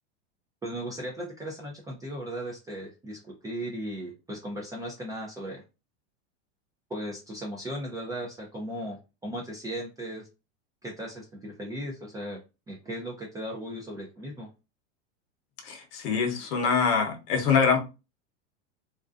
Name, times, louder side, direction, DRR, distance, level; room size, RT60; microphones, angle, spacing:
voice 1, 0.6-5.6 6.9-10.3 10.8-12.4 12.7-14.5, equal, 10° right, 0.4 m, -37 dB
voice 2, 15.6-17.8, left 5 dB, 55° left, 0.8 m, -24 dB
2.5 x 2.2 x 2.4 m
supercardioid pair, 125°, 35 cm